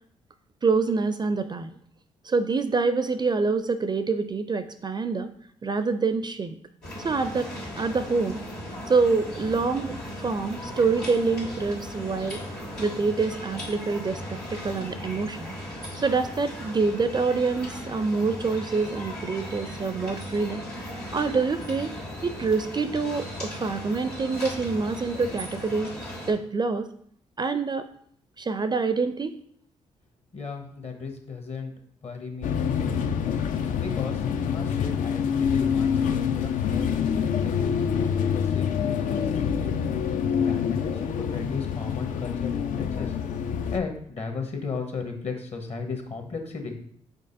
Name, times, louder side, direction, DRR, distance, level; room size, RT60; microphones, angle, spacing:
voice 1, 0.6-1.7 2.2-5.3 5.6-6.6 7.0-7.5 7.8-8.4 8.9-12.4 12.8-15.5 16.0-20.6 21.1-21.9 22.2-25.9 26.3-26.9 27.4-27.9 28.4-29.3, right 4 dB, 30° right, 10 dB, 0.4 m, -26 dB
sound 1, 6.8-26.3, equal, 85° left, 1.8 m, -37 dB
voice 2, 30.3-31.7 32.0-33.0 33.8-39.8 40.4-43.2 43.5-46.7, left 4 dB, 45° left, 4 dB, 1.1 m, -36 dB
sound 2, 32.4-43.8, left 7 dB, 65° left, 0.4 m, -26 dB
5.3 x 3.8 x 2.6 m, 0.62 s
hypercardioid pair, 40°, 15 cm